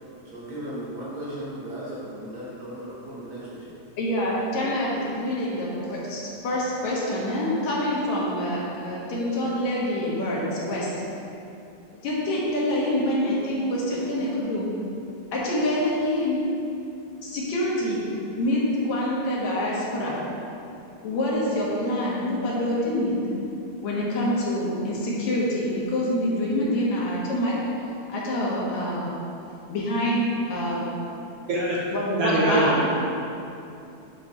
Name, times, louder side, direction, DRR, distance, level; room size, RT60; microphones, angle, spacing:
voice 1, 0.3-3.7, right 1 dB, 50° right, -8 dB, 2.0 m, -36 dB
voice 2, 4.0-10.9 12.0-14.7 15.3-16.4 17.2-18.0 18.4-20.2 21.0-23.1 23.8-27.6 28.1-29.1 29.7-30.9 31.9-32.8, left 1 dB, 75° left, -5 dB, 2.5 m, -26 dB
voice 3, 32.2-33.0, right 2 dB, 75° right, -5 dB, 1.4 m, -23 dB
9.9 x 4.7 x 3.0 m, 2.8 s
omnidirectional pair, 3.3 m